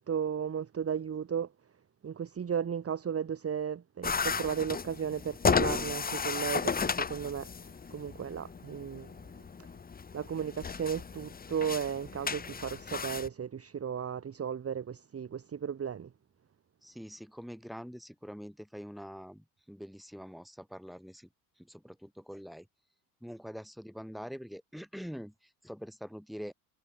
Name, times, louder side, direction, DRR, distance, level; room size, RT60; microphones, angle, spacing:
voice 1, 0.0-1.5 2.0-7.5 7.9-9.1 10.1-16.1, right 7 dB, 30° right, 1.5 m, -35 dB
sound 1, 4.0-13.3, left 5 dB, 20° left, 0.9 m, -34 dB
voice 2, 16.8-21.3 21.6-22.7 23.2-26.5, equal, ahead, 5.6 m, -45 dB
supercardioid pair, 85°, 49 cm